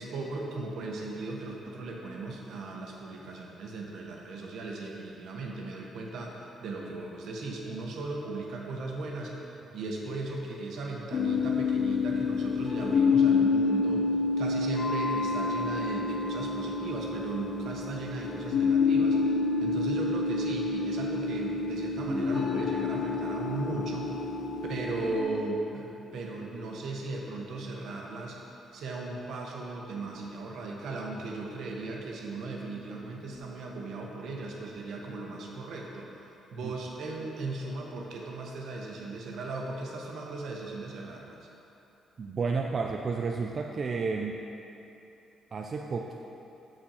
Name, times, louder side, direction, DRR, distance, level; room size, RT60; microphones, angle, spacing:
voice 1, 0.0-14.1 14.4-19.2 19.6-24.2 24.7-28.4 28.7-36.1 36.5-41.5, right 3 dB, 75° right, -1 dB, 1.0 m, -37 dB
sound 1, 11.1-25.2, left 4 dB, 50° left, 0.6 m, -28 dB
voice 2, 42.2-44.4 45.5-46.1, right 4 dB, 45° right, 2 dB, 0.4 m, -31 dB
6.3 x 6.0 x 4.2 m, 3.0 s
cardioid pair, 90°, 0 cm